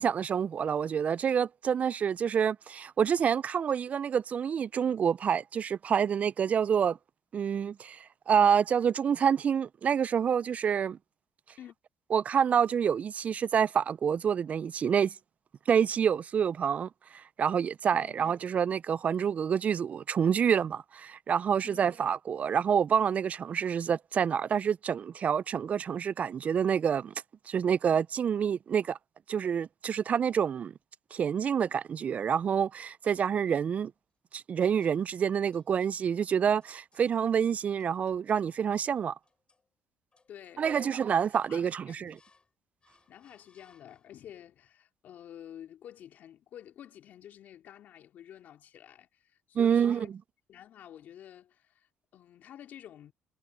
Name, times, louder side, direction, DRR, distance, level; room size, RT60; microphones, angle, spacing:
voice 1, 0.0-7.0 7.3-11.0 12.1-15.1 15.7-27.1 27.5-29.0 29.3-30.7 31.1-33.9 34.3-39.1 40.6-42.2 49.6-50.1, right 7 dB, 45° right, 0.4 m, -27 dB
voice 2, 17.9-18.2 21.6-21.9 40.3-42.2 43.1-50.1 50.5-53.1, left 10 dB, 65° left, 3.3 m, -50 dB
sound 1, 33.1-33.9 34.6-35.2 35.5-36.0 36.6-37.1 37.8-38.5 38.9-39.7 40.1-40.7 41.1-41.6 42.1-42.5 42.8-44.3, left 4 dB, 30° left, 7.3 m, -68 dB
supercardioid pair, 65°, 3 cm